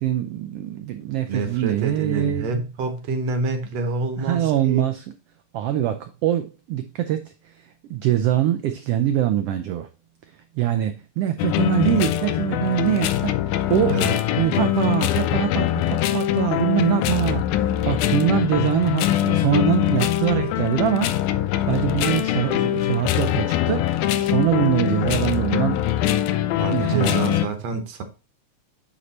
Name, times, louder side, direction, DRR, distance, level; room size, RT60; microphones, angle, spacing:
voice 1, 0.0-2.6 4.2-5.1 5.5-9.9 10.3-13.4 13.7-14.0 14.4-21.2 21.7-25.8 26.7-27.4, right 11 dB, 90° right, 1.3 m, -24 dB
voice 2, 1.3-4.8 13.9-14.2 26.6-28.0, right 3 dB, 65° right, 2.0 m, -27 dB
sound 1, 11.4-27.5, left 12 dB, 90° left, 2.0 m, -23 dB
9.4 x 3.2 x 4.0 m
omnidirectional pair, 3.3 m